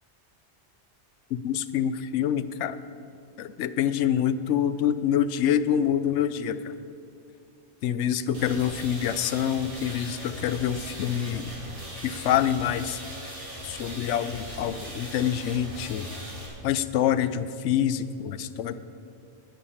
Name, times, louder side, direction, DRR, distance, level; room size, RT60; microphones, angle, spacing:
voice 1, 1.3-2.8 3.4-6.6 7.8-11.5 12.0-13.0 13.6-16.1 16.6-18.7, left 9 dB, 90° left, 14 dB, 0.9 m, -26 dB
sound 1, 8.3-16.5, equal, 50° right, 2.8 m, -39 dB
10.0 x 9.8 x 7.3 m, 2.5 s
omnidirectional pair, 1.2 m